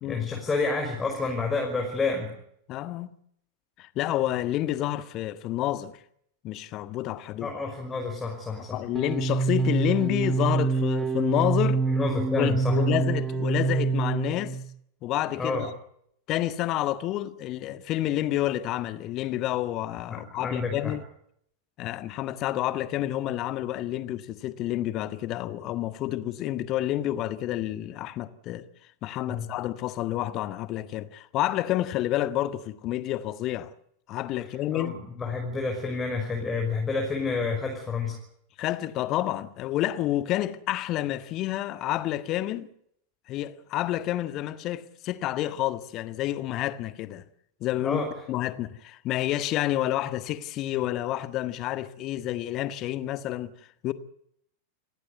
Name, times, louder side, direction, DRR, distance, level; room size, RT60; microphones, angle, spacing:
voice 1, 0.0-2.3 7.4-8.8 11.9-12.8 15.4-15.7 20.1-20.9 29.3-29.5 34.7-38.2 47.8-48.1, left 4 dB, 15° left, 5.9 m, -29 dB
voice 2, 2.7-3.1 3.8-6.0 6.4-7.5 8.7-11.8 12.4-14.6 15.0-15.7 16.3-21.0 21.8-28.7 29.0-33.7 34.1-35.0 38.6-42.7 43.3-47.2 47.6-48.0 48.3-53.5 53.8-53.9, left 14 dB, 35° left, 1.6 m, -29 dB
sound 1, 8.9-14.6, right 4 dB, 15° right, 2.9 m, -26 dB
29.5 x 17.5 x 8.3 m
figure-of-eight pair, 90°, 0 cm